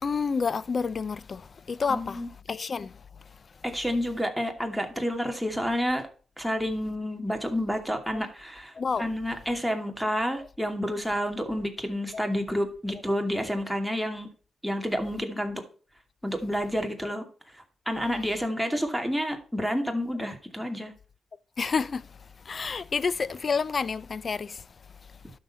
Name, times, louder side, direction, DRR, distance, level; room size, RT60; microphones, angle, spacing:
voice 1, 0.0-3.0 8.1-8.2 8.7-9.1 12.1-12.2 17.0-17.1 21.6-22.2 22.4-24.7, left 5 dB, 45° left, 0.6 m, -29 dB
voice 2, 1.9-2.3 3.6-6.1 6.4-8.7 9.0-14.3 14.6-15.6 16.2-17.2 17.9-20.9, equal, ahead, 2.5 m, -29 dB
11.5 x 6.7 x 4.2 m
cardioid pair, 80°, 0 cm